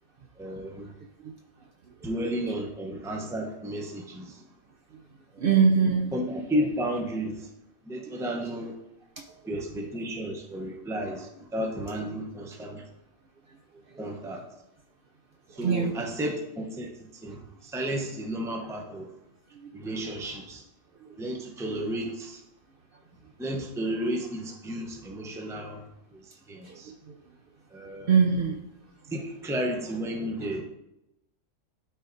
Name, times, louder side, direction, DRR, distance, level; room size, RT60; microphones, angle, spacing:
voice 1, 0.4-0.9 2.0-4.4 5.3-5.5 6.1-7.5 7.9-8.8 9.5-12.9 14.0-14.4 15.6-19.1 19.7-20.6 21.2-22.4 23.4-26.2 26.5-26.9 27.7-28.1 29.1-30.6, equal, 5° right, 2 dB, 0.6 m, -33 dB
voice 2, 5.4-6.1 8.1-8.2 15.6-15.9 26.7-26.9 28.1-28.6, right 6 dB, 55° right, 2 dB, 0.7 m, -22 dB
11.5 x 4.1 x 2.6 m, 0.87 s
omnidirectional pair, 1.3 m